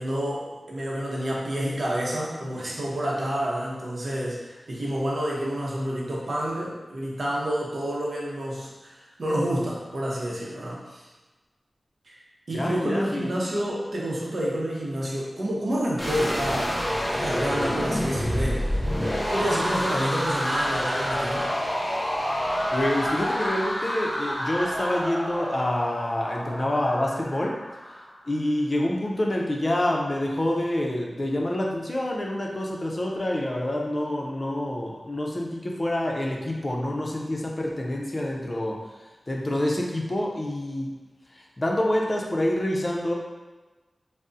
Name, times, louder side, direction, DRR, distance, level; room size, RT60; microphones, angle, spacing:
voice 1, 0.0-11.1 12.1-12.2 12.5-16.8 17.1-18.8 19.3-21.5, equal, 70° right, -4 dB, 0.7 m, -29 dB
voice 2, 12.5-13.3 22.7-27.6 27.9-28.0 28.3-41.0 41.3-43.1, left 1 dB, 40° left, -1 dB, 0.4 m, -27 dB
sound 1, 16.0-28.0, equal, 20° left, 0.8 m, -28 dB
3.6 x 2.0 x 2.5 m, 1.2 s
wide cardioid pair, 60°, 0 cm